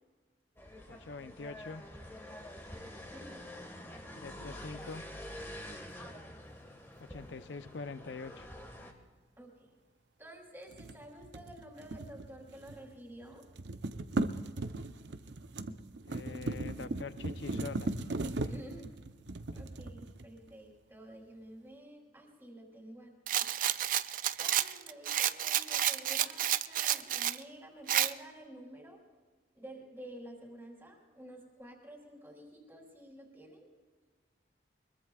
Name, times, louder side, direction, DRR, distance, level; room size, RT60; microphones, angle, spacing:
sound 1, 0.6-8.9, left 1 dB, 15° left, 1.6 m, -47 dB
voice 1, 0.9-1.8 4.1-5.1 7.0-8.5 16.1-17.9 18.4-18.5, left 4 dB, 80° left, 11 dB, 0.6 m, -44 dB
voice 2, 3.1-3.4 5.9-6.1 9.4-9.7 10.2-13.4 18.5-19.0 19.5-23.5 24.4-29.0 29.5-33.7, right 1 dB, 10° right, 0 dB, 3.3 m, -51 dB
sound 2, 10.7-13.0 13.2-20.5, right 2 dB, 75° right, 0.7 m, -38 dB
Rattle, 23.3-27.4 27.9-28.1, right 11 dB, 45° right, 0.4 m, -30 dB
23.5 x 22.0 x 2.4 m, 1.4 s
head